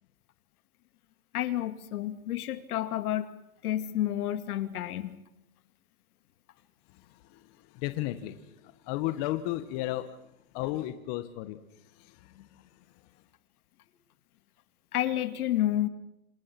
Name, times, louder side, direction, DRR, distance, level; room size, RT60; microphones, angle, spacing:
voice 1, 1.3-3.3 3.6-5.2 12.4-12.5 14.9-15.9, left 13 dB, 75° left, 10 dB, 2.4 m, -30 dB
voice 2, 6.9-10.1 10.5-11.6 12.0-12.3, left 15 dB, 45° left, 9 dB, 1.8 m, -34 dB
27.5 x 27.5 x 6.2 m, 0.86 s
hypercardioid pair, 135°, 45 cm